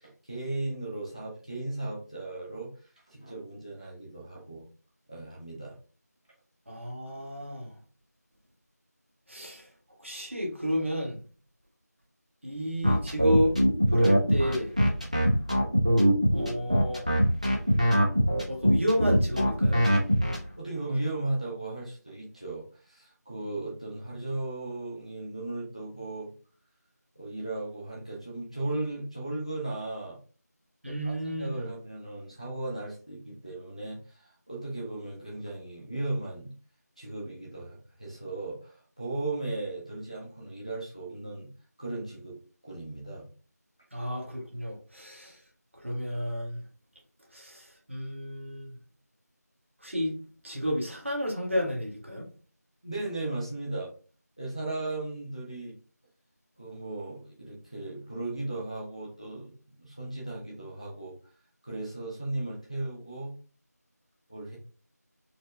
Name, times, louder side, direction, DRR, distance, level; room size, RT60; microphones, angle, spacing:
voice 1, 0.0-2.7 3.1-4.7 5.1-5.8 15.0-15.3 20.3-26.3 27.2-30.2 30.8-36.5 37.0-41.5 41.8-42.4 42.6-43.3 52.8-53.9 54.4-55.8 56.6-59.5 59.8-61.1 61.6-63.3 64.3-64.6, right 2 dB, 20° left, 0.6 m, -36 dB
voice 2, 6.7-7.7 9.3-9.7 10.0-11.2 12.4-13.5 13.8-14.7 16.3-17.1 18.5-19.9 30.8-31.7 43.9-45.4 45.8-46.6 47.3-48.7 49.8-50.1 50.4-52.2, equal, 45° right, 1.2 m, -31 dB
sound 1, 12.8-20.4, equal, 25° right, 0.5 m, -22 dB
4.2 x 2.0 x 3.0 m
figure-of-eight pair, 175°, 9 cm